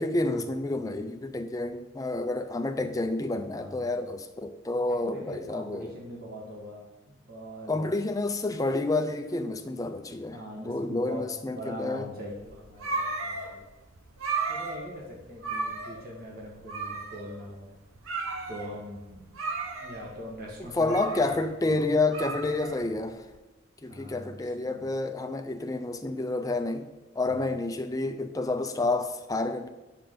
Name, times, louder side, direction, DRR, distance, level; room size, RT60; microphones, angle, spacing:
voice 1, 0.0-5.9 7.7-10.4 10.6-12.1 20.6-23.3 23.8-26.8 27.2-29.7, left 2 dB, 15° left, 0.4 m, -29 dB
voice 2, 3.5-3.9 4.9-7.9 10.3-13.7 14.5-17.7 18.5-19.2 19.8-21.0 23.8-24.9 27.2-27.5, equal, 45° right, 1.5 m, -42 dB
sound 1, 12.3-23.3, right 3 dB, 85° right, 0.9 m, -35 dB
8.5 x 6.6 x 3.8 m
head